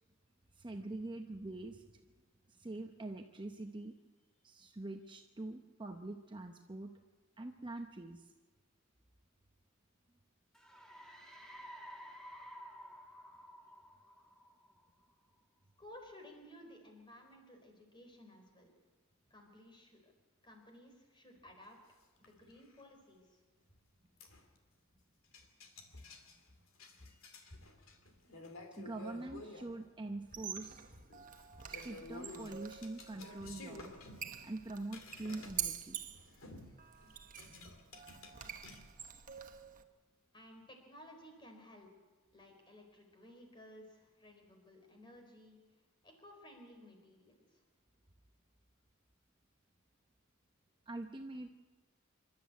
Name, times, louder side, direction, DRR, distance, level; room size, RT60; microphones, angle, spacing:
voice 1, 0.6-1.8 2.5-3.9 4.4-6.9 7.4-8.3 27.1-27.2 28.8-31.0 31.6-33.9 34.4-36.0 50.9-51.5, right 2 dB, 20° right, 4 dB, 0.8 m, -44 dB
sound 1, 10.5-15.1, equal, 5° left, 1.9 m, -53 dB
voice 2, 15.8-18.7 19.3-20.1 20.4-23.4 40.3-41.9 42.3-45.6 46.0-47.6, left 1 dB, 20° left, 3 dB, 4.1 m, -56 dB
sound 2, 21.9-22.0 22.2-22.8 23.7-23.8 24.2-24.6 25.3-29.7 30.3-30.7 30.9-35.7 36.0-38.8, left 2 dB, 70° left, 2.5 m, -52 dB
Squeak, 30.2-39.8, right 9 dB, 40° right, 1.1 m, -46 dB
26.5 x 12.5 x 8.3 m, 1.3 s
head